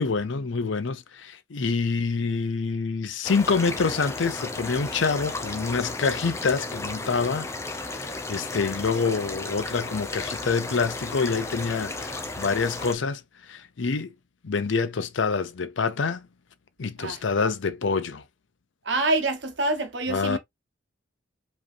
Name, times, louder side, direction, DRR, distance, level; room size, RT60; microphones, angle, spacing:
voice 1, 0.0-7.5 7.9-13.2 13.5-14.1 14.4-16.3 16.8-18.2 20.1-20.4, left 4 dB, 80° left, 0.6 m, -26 dB
sound 1, 3.2-12.9, left 2 dB, 15° left, 0.6 m, -34 dB
voice 2, 17.0-17.5 18.8-20.4, right 2 dB, 70° right, 1.1 m, -26 dB
5.1 x 3.0 x 2.6 m
head